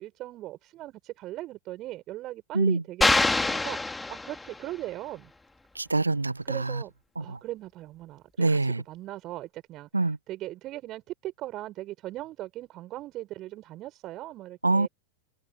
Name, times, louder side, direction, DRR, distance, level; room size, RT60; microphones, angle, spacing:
voice 1, 0.0-3.1 3.5-3.8 4.1-5.3 6.4-6.9 7.2-14.9, right 15 dB, 35° right, 6.1 m, -39 dB
sound 1, 3.0-4.7, left 2 dB, 10° left, 3.2 m, -25 dB
voice 2, 5.8-6.8 7.2-7.4 8.4-8.8 9.9-10.2 14.6-14.9, right 3 dB, 80° right, 0.7 m, -25 dB
figure-of-eight pair, 90°, 0 cm